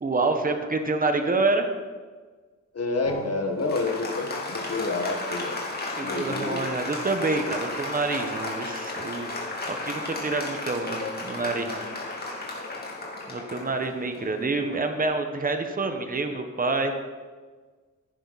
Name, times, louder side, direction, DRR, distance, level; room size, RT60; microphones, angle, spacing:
voice 1, 0.0-1.7 5.9-9.3 9.6-11.8 12.1-12.3 13.3-17.0, right 3 dB, 25° right, 5 dB, 1.2 m, -27 dB
voice 2, 2.7-5.6 6.0-6.8, left 3 dB, 50° left, 3 dB, 1.6 m, -29 dB
Applause, 3.1-14.9, left 2 dB, 30° left, 2.5 m, -34 dB
15.5 x 9.9 x 4.1 m, 1.4 s
wide cardioid pair, 135°, 32 cm